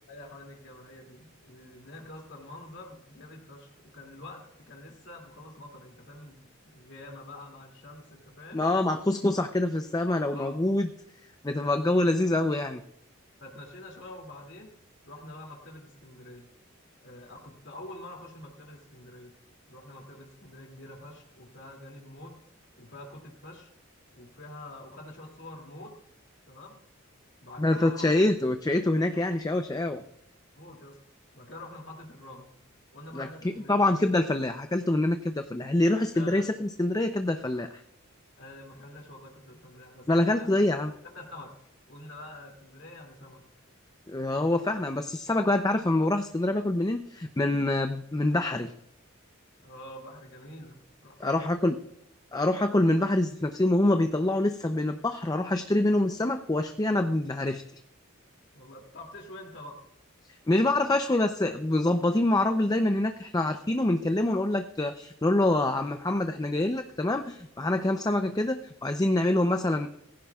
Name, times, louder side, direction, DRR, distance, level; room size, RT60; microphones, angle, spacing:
voice 1, 0.1-8.6 10.3-10.7 11.5-11.8 13.4-14.7 15.0-16.5 17.0-19.3 19.7-22.3 22.8-23.7 24.1-25.9 26.5-26.8 27.4-28.1 29.1-29.3 30.6-31.0 31.3-32.5 32.9-33.7 36.1-36.5 38.4-40.6 41.1-41.5 41.9-43.4 49.6-51.6 58.5-59.8, left 1 dB, 60° left, 0 dB, 2.6 m, -46 dB
voice 2, 8.5-10.9 11.4-12.8 27.6-30.0 33.1-33.3 33.7-37.8 40.1-40.9 44.1-48.7 51.2-51.7 52.3-57.6 60.5-69.9, left 1 dB, 20° left, 7 dB, 0.6 m, -25 dB
18.5 x 15.5 x 2.4 m, 0.81 s
head